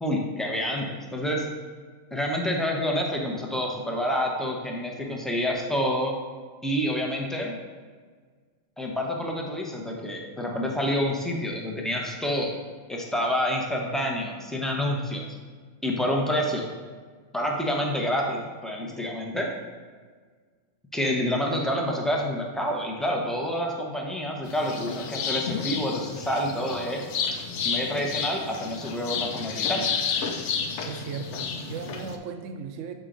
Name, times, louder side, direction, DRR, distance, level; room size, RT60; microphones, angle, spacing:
voice 1, 0.0-1.5 2.1-6.1 6.6-7.6 8.8-12.6 12.9-15.3 15.8-16.7 17.3-19.5 20.9-27.0 27.6-29.9, equal, ahead, -1 dB, 0.5 m, -28 dB
sound 1, 24.4-32.2, left 6 dB, 70° left, 0.9 m, -31 dB
voice 2, 30.8-32.9, right 6 dB, 80° right, 7 dB, 0.9 m, -37 dB
6.5 x 4.6 x 3.8 m, 1.6 s
omnidirectional pair, 1.3 m